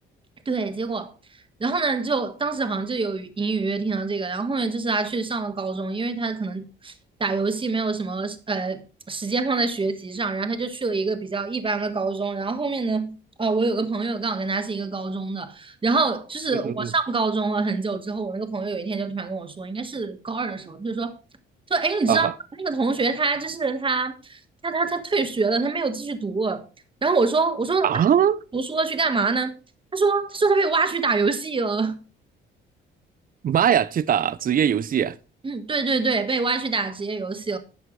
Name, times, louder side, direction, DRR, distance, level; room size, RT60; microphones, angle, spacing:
voice 1, 0.4-1.1 1.6-6.9 7.2-21.2 21.7-22.3 22.6-26.7 27.0-28.0 28.5-29.5 29.9-32.0 35.4-37.6, right 4 dB, 25° right, 1.5 m, -25 dB
voice 2, 16.5-16.9 22.1-22.3 27.8-28.4 33.4-35.1, right 9 dB, 45° right, 0.6 m, -21 dB
12.0 x 7.9 x 3.2 m
cardioid pair, 90°, 20 cm